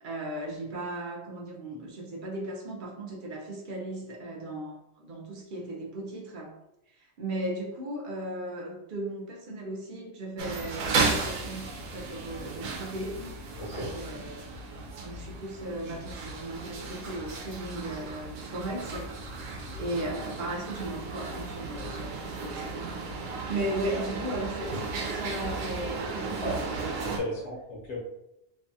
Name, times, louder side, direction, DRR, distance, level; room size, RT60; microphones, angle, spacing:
voice 1, 0.0-6.5 6.9-13.2 13.7-14.6 15.0-19.1 19.4-27.4, right 1 dB, 55° right, -2 dB, 0.6 m, -37 dB
sound 1, 10.4-27.2, right 3 dB, 85° right, 1.0 m, -35 dB
voice 2, 13.6-13.9 26.4-26.6 27.0-28.0, left 1 dB, 70° left, -3 dB, 0.9 m, -35 dB
2.6 x 2.2 x 2.6 m, 0.88 s
omnidirectional pair, 1.3 m